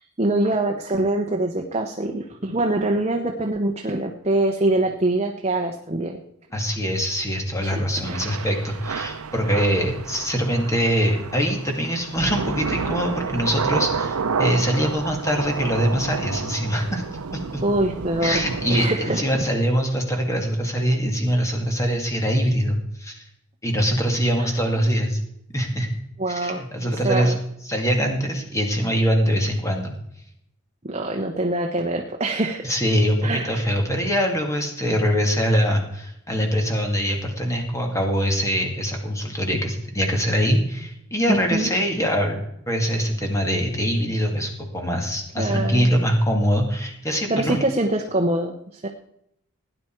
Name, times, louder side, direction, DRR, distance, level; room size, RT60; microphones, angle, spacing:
voice 1, 0.2-6.2 7.6-8.0 17.6-18.4 18.7-19.2 24.4-24.8 26.2-26.6 26.9-27.4 30.9-32.7 33.2-33.7 41.3-41.7 45.4-45.9 47.3-48.9, right 2 dB, 30° right, 3 dB, 1.0 m, -24 dB
voice 2, 6.5-17.0 17.3-17.6 18.2-23.3 23.6-25.2 25.5-25.9 26.3-27.4 27.6-29.9 32.6-42.4 42.7-47.6, equal, 15° left, 2 dB, 2.2 m, -23 dB
Thunder / Rain, 8.0-18.9, right 5 dB, 85° right, 0.7 m, -30 dB
17.0 x 10.0 x 4.6 m, 0.78 s
head